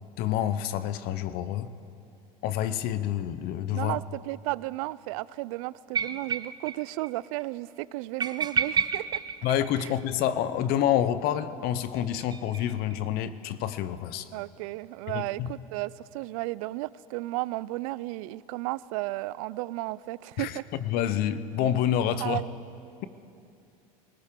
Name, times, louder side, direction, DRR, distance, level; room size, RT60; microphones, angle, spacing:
voice 1, 0.2-1.7 2.4-4.0 9.4-14.3 15.1-15.5 20.4-20.5 20.8-22.4, left 10 dB, 55° left, 14 dB, 0.7 m, -28 dB
voice 2, 3.7-9.2 9.8-9.9 14.3-20.6 22.2-22.5, right 19 dB, 70° right, 21 dB, 0.4 m, -34 dB
sound 1, 5.9-6.8 7.0-7.1 7.4-7.5 8.2-10.2 11.8-13.0, right 7 dB, 25° right, 0.5 m, -30 dB
20.0 x 18.5 x 3.7 m, 2.7 s
hypercardioid pair, 95°, 18 cm